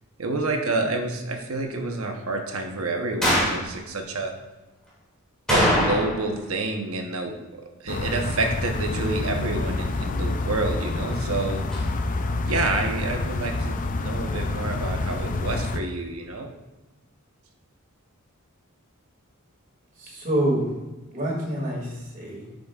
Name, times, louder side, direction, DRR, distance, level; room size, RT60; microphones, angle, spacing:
voice 1, 0.2-4.3 5.5-11.6 12.5-16.5, right 2 dB, 80° right, 4 dB, 0.9 m, -28 dB
sound 1, 3.2-3.7 5.5-6.3 6.6-6.7 11.7-11.8, equal, 5° left, 2.4 m, -22 dB
sound 2, 7.9-15.8, left 2 dB, 40° left, 0.4 m, -28 dB
voice 2, 20.0-20.7 21.1-22.5, right 1 dB, 40° right, -3 dB, 2.3 m, -26 dB
10.5 x 5.1 x 2.4 m, 1.1 s
head